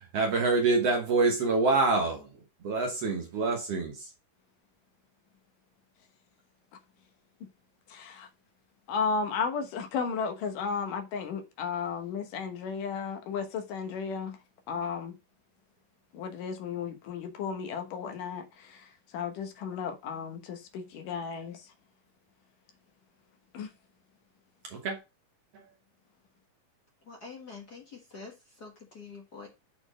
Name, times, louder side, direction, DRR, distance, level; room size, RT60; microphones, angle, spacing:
voice 1, 0.0-2.3 2.6-4.1 24.6-25.0 25.5-25.6, right 3 dB, 60° right, 1.9 m, -26 dB
voice 2, 7.9-8.3 8.9-14.4 14.7-15.1 16.1-21.6 23.5-23.7, left 5 dB, 75° left, 2.8 m, -34 dB
voice 3, 27.0-29.5, left 4 dB, 45° left, 1.4 m, -46 dB
7.1 x 4.4 x 5.0 m
omnidirectional pair, 3.8 m